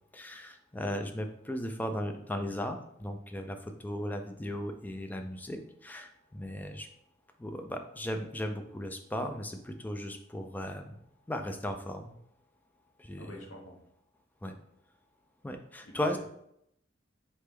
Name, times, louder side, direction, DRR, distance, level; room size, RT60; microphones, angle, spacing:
voice 1, 0.1-6.9 7.4-11.0 11.3-12.2 13.0-13.3 14.4-14.5 15.4-16.2, left 1 dB, 10° left, 6 dB, 0.3 m, -36 dB
voice 2, 13.2-13.8 15.8-16.2, left 1 dB, 85° left, 0 dB, 1.1 m, -47 dB
4.1 x 3.3 x 3.3 m, 0.75 s
head